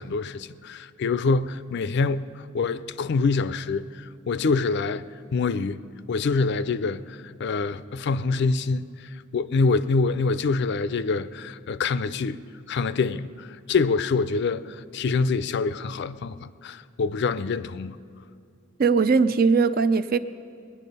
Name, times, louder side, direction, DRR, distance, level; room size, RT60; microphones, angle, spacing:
voice 1, 0.0-2.3 2.5-5.0 5.3-5.8 6.1-8.9 9.3-12.4 12.7-18.0, left 4 dB, 55° left, 15 dB, 0.4 m, -25 dB
voice 2, 18.8-20.2, right 5 dB, 45° right, 12 dB, 0.4 m, -20 dB
20.0 x 10.0 x 5.3 m, 2.5 s
head